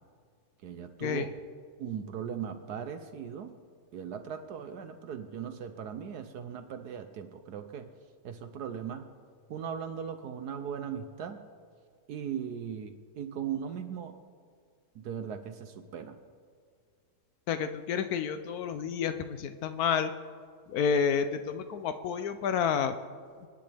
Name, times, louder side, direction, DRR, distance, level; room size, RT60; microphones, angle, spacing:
voice 1, 0.6-1.3 1.8-3.5 3.9-7.9 8.2-9.1 9.5-11.4 12.1-14.2 14.9-16.2, right 8 dB, 65° right, 9 dB, 1.0 m, -38 dB
voice 2, 17.5-20.1 20.7-22.9, left 7 dB, 75° left, 10 dB, 0.8 m, -30 dB
25.0 x 10.5 x 3.4 m, 2.1 s
omnidirectional pair, 2.2 m